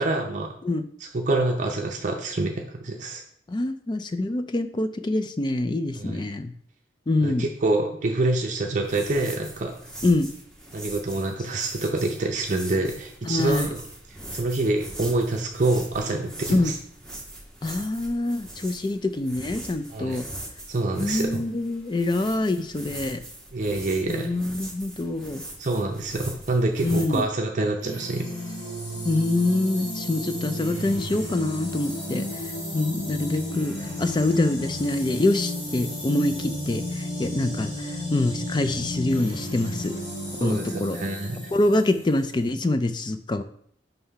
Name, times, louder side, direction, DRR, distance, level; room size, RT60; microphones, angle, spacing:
voice 1, 0.0-0.5 1.0-3.2 5.9-6.2 7.2-9.7 10.7-13.8 14.3-16.8 19.9-20.2 20.7-21.4 23.5-24.3 25.6-28.3 40.4-41.4, right 2 dB, 40° right, 2 dB, 0.6 m, -26 dB
voice 2, 3.5-6.5 7.1-7.5 10.0-10.3 13.2-13.7 16.5-16.7 17.6-20.2 21.0-23.2 24.1-25.4 26.8-27.2 29.0-32.2 32.7-39.9 40.4-41.0 41.5-43.4, left 2 dB, 25° left, 10 dB, 0.4 m, -25 dB
sound 1, 8.8-27.2, right 1 dB, 5° left, 0.9 m, -41 dB
sound 2, 27.8-42.5, left 1 dB, 85° left, 2.5 m, -33 dB
5.5 x 3.4 x 5.6 m, 0.66 s
head